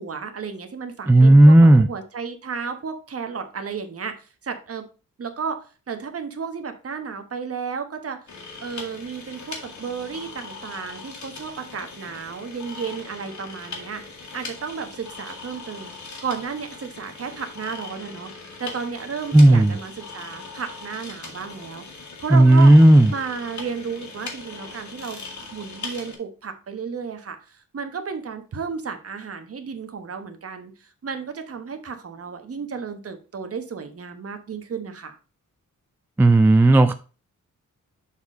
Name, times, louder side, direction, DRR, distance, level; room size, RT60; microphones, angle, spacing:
voice 1, 0.0-4.9 5.2-8.2 8.6-14.0 14.3-15.9 16.2-18.3 18.6-22.7 23.1-35.1, right 6 dB, 45° right, 1.2 m, -33 dB
voice 2, 1.1-1.9 19.3-19.7 22.3-23.1 36.2-36.9, right 1 dB, 5° right, 0.3 m, -12 dB
sound 1, 8.3-26.2, left 4 dB, 60° left, 2.0 m, -40 dB
7.1 x 4.2 x 4.9 m
wide cardioid pair, 150°, 32 cm